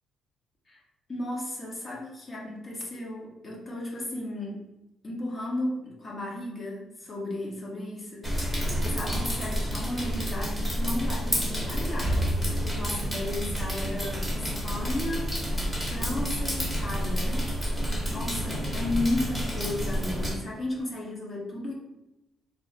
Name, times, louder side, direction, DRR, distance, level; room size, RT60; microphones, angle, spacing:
voice 1, 1.1-4.7 5.0-21.7, left 1 dB, 35° left, -3 dB, 1.1 m, -34 dB
sound 1, 8.2-20.4, equal, ahead, 1.0 m, -29 dB
3.1 x 2.1 x 4.0 m, 0.92 s
cardioid pair, 90°, 0 cm